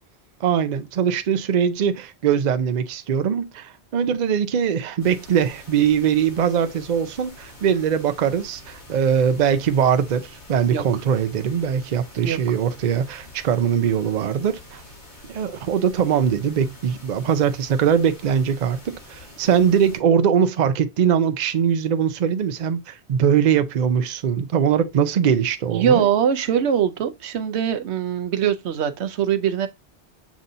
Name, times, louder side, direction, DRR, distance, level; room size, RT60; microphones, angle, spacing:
voice 1, 0.4-14.8 15.3-26.1, right 8 dB, 50° right, 0.6 m, -21 dB
sound 1, 5.0-20.0, left 1 dB, 80° left, 2.7 m, -45 dB
voice 2, 25.7-29.7, right 8 dB, 80° right, 0.9 m, -22 dB
7.2 x 2.7 x 2.5 m
omnidirectional pair, 1.1 m